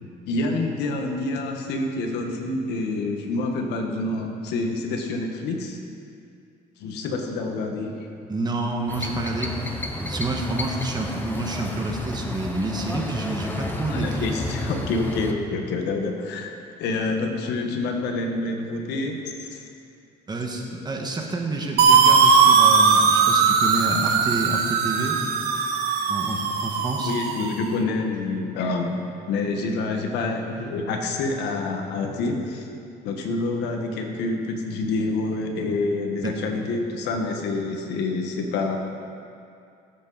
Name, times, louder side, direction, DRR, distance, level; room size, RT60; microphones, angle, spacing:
voice 1, 0.2-5.8 6.8-8.0 13.9-16.5 16.8-19.6 27.0-32.7 33.0-38.8, left 3 dB, 85° left, 3 dB, 1.5 m, -27 dB
voice 2, 8.3-9.5 9.9-14.3 14.7-14.9 20.3-25.2 26.1-27.1 36.2-36.3, right 2 dB, 25° right, 1 dB, 1.6 m, -28 dB
sound 1, 8.9-15.3, left 1 dB, 10° left, 1.1 m, -32 dB
sound 2, 21.8-27.6, right 5 dB, 70° right, 1.2 m, -19 dB
17.5 x 8.2 x 4.2 m, 2.5 s
cardioid pair, 110°, 17 cm